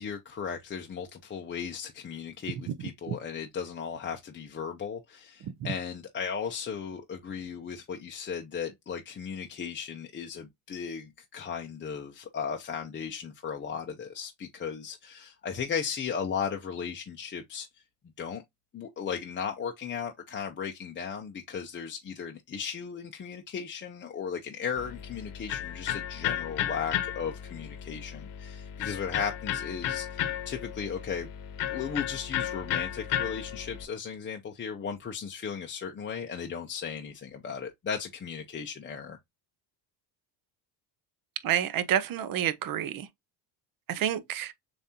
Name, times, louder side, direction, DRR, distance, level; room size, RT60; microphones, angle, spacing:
voice 1, 0.0-17.7 18.2-18.4 18.7-31.3 31.7-39.2, left 7 dB, 25° left, 0.6 m, -36 dB
Electric guitar, 24.8-33.8, left 10 dB, 60° left, 1.0 m, -34 dB
voice 2, 41.4-43.1 43.9-44.5, right 10 dB, 45° right, 0.7 m, -28 dB
7.1 x 2.6 x 2.8 m
cardioid pair, 140°, 47 cm